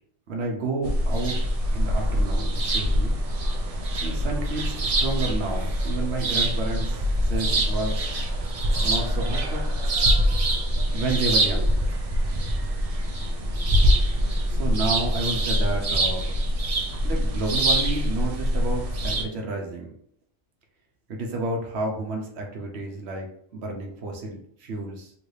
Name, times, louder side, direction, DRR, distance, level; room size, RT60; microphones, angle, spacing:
voice 1, 0.3-1.4 1.7-3.2 4.0-8.1 8.8-9.6 10.9-11.7 14.5-16.3 17.0-19.9 21.1-23.3 23.5-25.1, right 2 dB, 70° right, 1 dB, 1.0 m, -30 dB
sound 1, 0.8-19.2, right 1 dB, 45° right, 0.5 m, -24 dB
3.2 x 3.2 x 2.6 m, 0.65 s
omnidirectional pair, 1.2 m